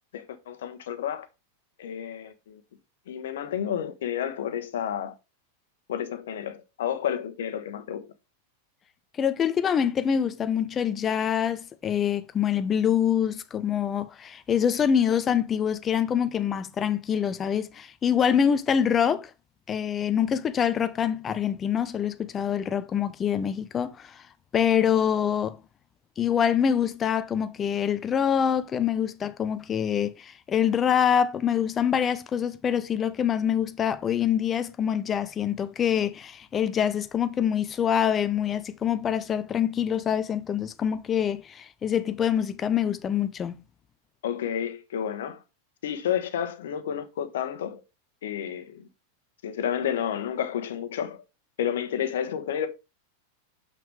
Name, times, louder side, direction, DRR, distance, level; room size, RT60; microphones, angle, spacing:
voice 1, 0.1-1.3 1.8-2.6 3.1-5.2 5.9-8.1 44.2-45.4 45.8-47.8 48.2-48.9 49.4-51.2 51.6-52.7, left 9 dB, 70° left, 1.3 m, -30 dB
voice 2, 9.2-19.3 19.7-24.2 24.5-25.6 26.2-43.6, left 8 dB, 25° left, 0.8 m, -25 dB
6.9 x 6.1 x 3.3 m
hypercardioid pair, 100°, 0 cm